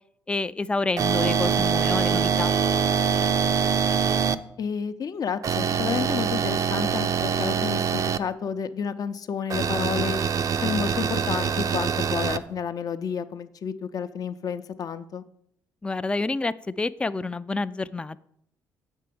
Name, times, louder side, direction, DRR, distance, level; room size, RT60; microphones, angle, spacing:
voice 1, 0.3-2.5 15.8-18.2, left 3 dB, 15° left, 14 dB, 0.3 m, -28 dB
sound 1, 1.0-4.4 5.4-8.2 9.5-12.4, right 6 dB, 50° right, 0.5 m, -24 dB
voice 2, 4.6-10.2 10.6-15.2, left 7 dB, 55° left, 11 dB, 0.6 m, -30 dB
7.5 x 4.5 x 6.8 m, 0.71 s
supercardioid pair, 70°, 8 cm